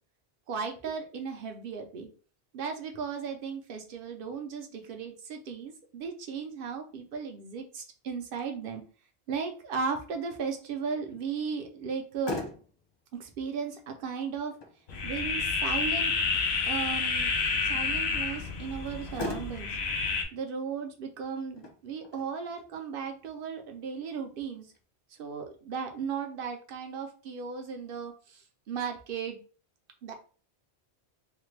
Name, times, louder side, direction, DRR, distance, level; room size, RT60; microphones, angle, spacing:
voice 1, 0.5-2.1 2.5-8.8 9.3-12.5 13.2-14.5 15.0-16.1 16.7-17.3 17.6-19.7 20.3-24.7 25.2-28.1 28.7-29.4 30.0-30.1, right 6 dB, 60° right, 5 dB, 0.8 m, -36 dB
Motor vehicle (road), 11.9-24.8, left 2 dB, 35° left, 0.4 m, -44 dB
sound 1, 14.9-20.2, left 4 dB, 75° left, 0.9 m, -29 dB
3.2 x 2.2 x 3.2 m, 0.38 s
omnidirectional pair, 1.1 m